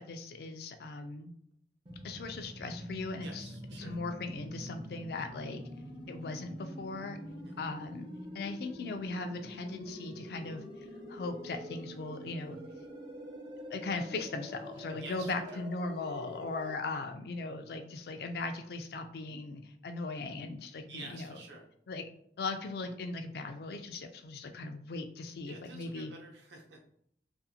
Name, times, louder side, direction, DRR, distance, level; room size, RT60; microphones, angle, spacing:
voice 1, 0.0-1.3 2.0-3.5 3.8-5.6 6.1-7.2 7.6-8.1 8.3-10.6 11.1-12.6 13.7-21.3 21.9-22.0 22.4-26.1, left 3 dB, 60° left, 7 dB, 0.3 m, -38 dB
sound 1, 1.8-16.7, equal, 25° right, 0.4 m, -46 dB
voice 2, 3.2-3.9 7.4-7.7 15.0-15.6 20.9-21.7 22.8-22.9 25.5-26.9, right 3 dB, 75° right, 1 dB, 0.6 m, -49 dB
2.5 x 2.4 x 2.7 m, 0.69 s
head